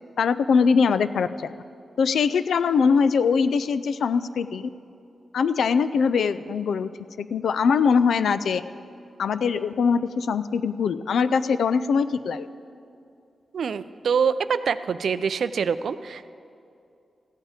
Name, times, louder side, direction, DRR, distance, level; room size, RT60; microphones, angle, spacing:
voice 1, 0.2-1.5 2.0-4.7 5.3-6.9 7.2-8.6 9.2-12.5, left 5 dB, 85° left, 13 dB, 0.3 m, -22 dB
voice 2, 13.5-16.3, right 6 dB, 75° right, 13 dB, 0.4 m, -25 dB
14.5 x 8.8 x 4.9 m, 2.6 s
wide cardioid pair, 90°, 0 cm